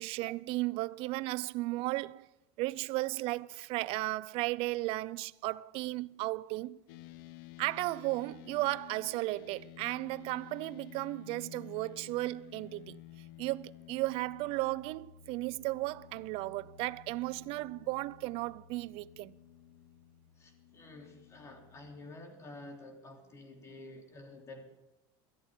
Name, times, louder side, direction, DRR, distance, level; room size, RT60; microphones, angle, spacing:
voice 1, 0.0-2.3 2.6-6.8 7.6-13.0 13.4-19.3, right 20 dB, 60° right, 0.5 m, -35 dB
sound 1, 6.9-21.9, left 13 dB, 80° left, 0.8 m, -53 dB
voice 2, 20.4-24.8, left 2 dB, 25° left, 3.3 m, -50 dB
22.0 x 13.5 x 3.7 m
supercardioid pair, 120°, 11 cm